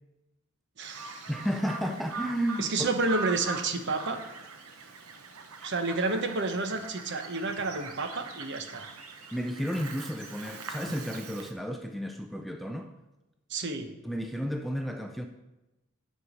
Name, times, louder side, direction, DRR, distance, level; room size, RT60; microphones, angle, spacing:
voice 1, 0.8-1.3 2.6-4.2 5.6-8.8 13.5-13.9, right 3 dB, 55° right, 8 dB, 0.9 m, -30 dB
Bird vocalization bird call bird song, 0.8-11.5, right 4 dB, 80° right, 0.9 m, -42 dB
voice 2, 1.3-2.9 9.3-12.9 14.0-15.3, equal, ahead, 5 dB, 0.4 m, -32 dB
9.8 x 4.6 x 6.3 m, 1.0 s
head